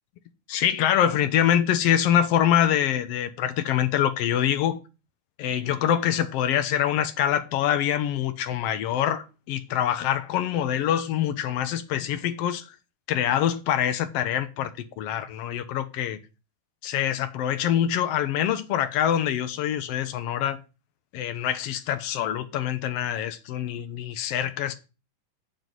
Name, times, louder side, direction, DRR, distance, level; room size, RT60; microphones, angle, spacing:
voice 1, 0.5-4.8 5.4-12.7 13.1-16.2 16.8-20.6 21.1-24.7, left 10 dB, 80° left, 1.4 m, -25 dB
8.9 x 7.8 x 3.9 m
omnidirectional pair, 3.6 m